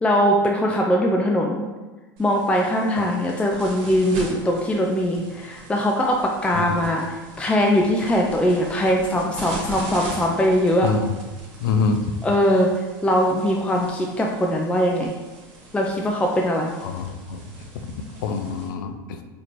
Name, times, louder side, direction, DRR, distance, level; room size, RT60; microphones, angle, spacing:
voice 1, 0.0-1.6 2.2-10.9 12.2-12.7 13.0-15.1 15.7-16.7, equal, 10° left, 0 dB, 0.4 m, -21 dB
sound 1, 2.2-18.7, right 2 dB, 55° right, 1.3 m, -41 dB
voice 2, 10.8-11.1 11.6-12.1 16.8-17.4 18.2-19.2, left 4 dB, 75° left, 6 dB, 0.5 m, -25 dB
4.4 x 2.9 x 2.6 m, 1.3 s
hypercardioid pair, 100°, 11 cm